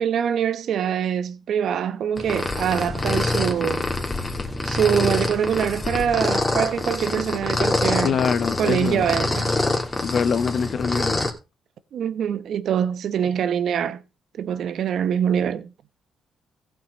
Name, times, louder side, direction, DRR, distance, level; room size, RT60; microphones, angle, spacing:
voice 1, 0.0-3.9 4.6-8.2 8.6-9.5 11.9-14.0 14.4-15.7, right 8 dB, 65° right, 1.0 m, -24 dB
cat.loud.purring, 2.2-11.3, left 2 dB, 20° left, 2.4 m, -25 dB
voice 2, 8.0-9.1 10.0-11.2, left 6 dB, 55° left, 1.0 m, -24 dB
15.5 x 5.9 x 5.2 m
cardioid pair, 90°, 0 cm